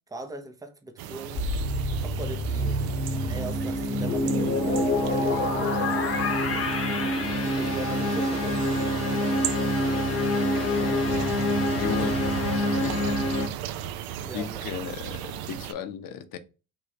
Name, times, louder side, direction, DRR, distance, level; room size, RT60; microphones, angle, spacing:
voice 1, 0.1-1.5 2.0-5.7 7.5-8.6 14.2-14.6, right 1 dB, 10° right, 0.7 m, -40 dB
sound 1, 1.0-15.7, right 10 dB, 55° right, 0.5 m, -36 dB
sound 2, 1.4-13.5, left 1 dB, 30° left, 1.0 m, -26 dB
Bowed string instrument, 7.1-10.8, right 4 dB, 85° right, 1.1 m, -43 dB
voice 2, 10.5-11.4 11.7-13.6 14.2-16.4, left 8 dB, 45° left, 0.7 m, -37 dB
3.7 x 2.5 x 3.1 m
hypercardioid pair, 75°, 45 cm